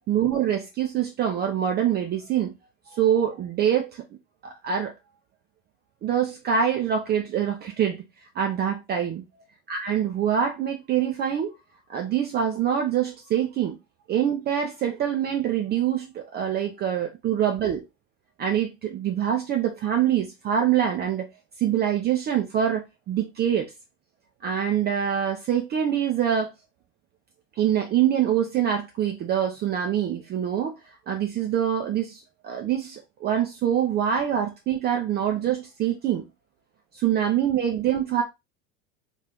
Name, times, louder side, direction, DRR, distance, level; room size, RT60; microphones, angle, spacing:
voice 1, 0.1-2.5 2.9-4.0 4.6-4.9 6.0-8.0 8.4-9.2 9.7-11.5 11.9-13.8 14.1-17.8 18.4-21.3 21.6-23.7 24.4-26.5 27.6-30.7 31.1-36.2 36.9-38.2, right 9 dB, 25° right, 0.5 m, -25 dB
2.8 x 2.4 x 3.4 m
hypercardioid pair, 90°, 40 cm